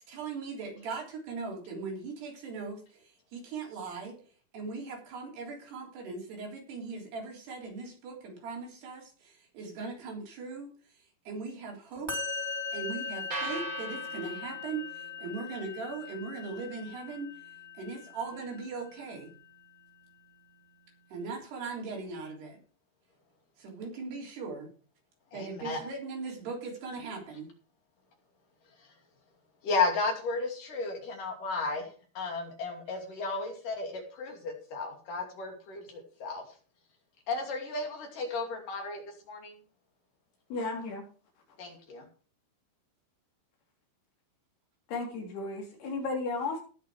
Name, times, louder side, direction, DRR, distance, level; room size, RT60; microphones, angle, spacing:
voice 1, 0.0-4.2 4.5-12.2 12.7-17.3 17.8-19.3 21.1-22.6 23.6-24.7 25.3-27.5, right 4 dB, 80° right, -1 dB, 5.7 m, -39 dB
Musical instrument, 12.1-19.4, left 5 dB, 5° right, 2.6 m, -40 dB
sound 1, 13.3-21.4, right 3 dB, 50° right, 1.0 m, -46 dB
voice 2, 25.3-25.8 29.6-36.4 37.3-39.0 39.3-39.6 41.6-42.1, left 3 dB, 55° left, 2 dB, 4.1 m, -34 dB
voice 3, 40.5-41.0 44.9-46.6, left 3 dB, 75° left, 0 dB, 5.3 m, -34 dB
18.5 x 6.2 x 4.9 m, 0.40 s
omnidirectional pair, 4.6 m